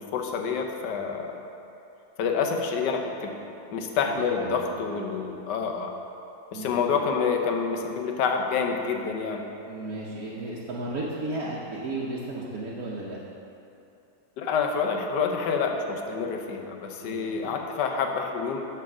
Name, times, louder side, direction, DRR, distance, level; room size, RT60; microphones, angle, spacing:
voice 1, 0.0-1.3 2.2-3.3 3.7-5.9 6.5-9.4 14.4-18.7, left 5 dB, 70° left, 3 dB, 1.3 m, -28 dB
voice 2, 4.2-4.8 6.5-6.8 9.7-13.2 17.0-17.6, right 2 dB, 60° right, -6 dB, 1.1 m, -34 dB
6.9 x 6.0 x 6.0 m, 2.8 s
omnidirectional pair, 2.0 m